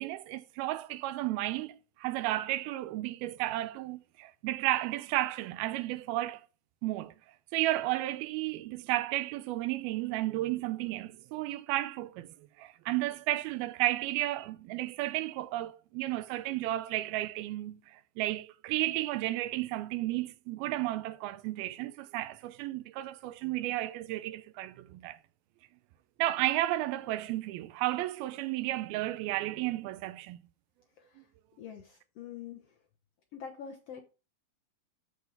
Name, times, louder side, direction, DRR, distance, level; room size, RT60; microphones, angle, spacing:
voice 1, 0.0-6.4 6.8-7.1 7.5-25.2 26.2-30.4, right 16 dB, 90° right, 2.6 m, -33 dB
voice 2, 31.0-31.3 31.6-32.7 33.3-34.0, left 7 dB, 85° left, 1.3 m, -45 dB
14.0 x 4.8 x 3.4 m
omnidirectional pair, 4.2 m